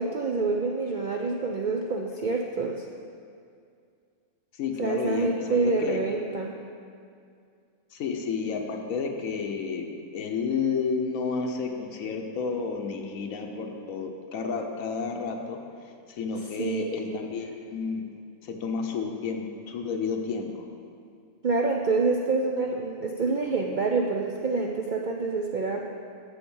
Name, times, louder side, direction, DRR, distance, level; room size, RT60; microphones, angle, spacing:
voice 1, 0.0-2.9 4.8-6.6 16.6-16.8 17.1-17.2 21.4-25.9, right 3 dB, 70° right, 1 dB, 0.4 m, -27 dB
voice 2, 4.5-6.0 7.9-15.6 16.1-18.1 18.4-20.7, left 5 dB, 80° left, 3 dB, 1.1 m, -31 dB
7.5 x 7.0 x 5.4 m, 2.3 s
omnidirectional pair, 1.4 m